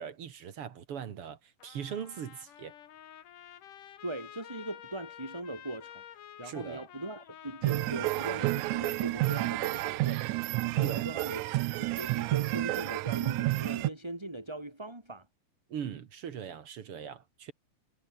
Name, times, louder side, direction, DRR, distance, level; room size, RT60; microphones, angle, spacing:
voice 1, 0.0-2.7 6.4-6.9 10.8-11.1 15.7-17.5, right 8 dB, 50° right, 2.2 m, -40 dB
Trumpet, 1.6-9.8, left 10 dB, 80° left, 3.3 m, -51 dB
voice 2, 4.0-10.4 10.6-11.5 11.8-15.3, right 1 dB, 10° right, 4.0 m, -40 dB
sound 1, 7.6-13.9, right 19 dB, 80° right, 1.9 m, -30 dB
omnidirectional pair, 3.6 m